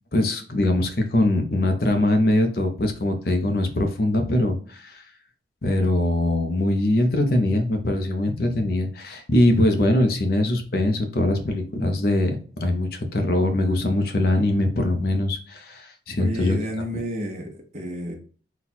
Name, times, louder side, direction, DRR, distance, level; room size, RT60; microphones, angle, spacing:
voice 1, 0.1-5.0 5.6-16.6, left 1 dB, 55° left, 6 dB, 0.7 m, -22 dB
voice 2, 16.2-18.2, equal, 40° right, 3 dB, 0.8 m, -31 dB
4.1 x 2.3 x 4.2 m, 0.42 s
head